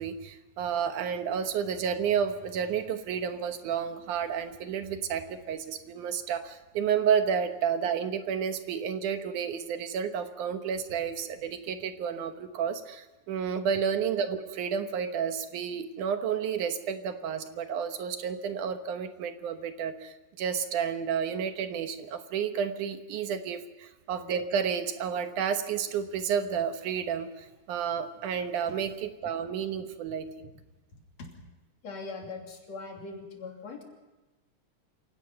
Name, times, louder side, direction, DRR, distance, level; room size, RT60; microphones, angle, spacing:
voice 1, 0.0-30.5, right 7 dB, 80° right, 8 dB, 2.7 m, -31 dB
voice 2, 31.8-33.8, left 3 dB, 55° left, 1 dB, 4.1 m, -40 dB
27.5 x 17.0 x 5.8 m, 1.1 s
omnidirectional pair, 3.5 m